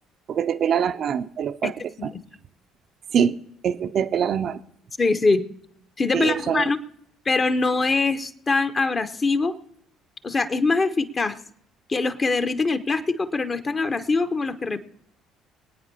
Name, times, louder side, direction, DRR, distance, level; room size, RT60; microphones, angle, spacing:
voice 1, 0.3-1.7 2.0-2.1 3.1-3.4 3.6-4.6 6.1-6.7, right 8 dB, 50° right, 11 dB, 0.4 m, -23 dB
voice 2, 5.0-5.4 6.0-6.8 7.3-9.6 10.2-11.4 11.9-14.8, left 3 dB, 30° left, 12 dB, 0.8 m, -23 dB
25.0 x 9.2 x 2.7 m, 0.74 s
figure-of-eight pair, 50°, 0 cm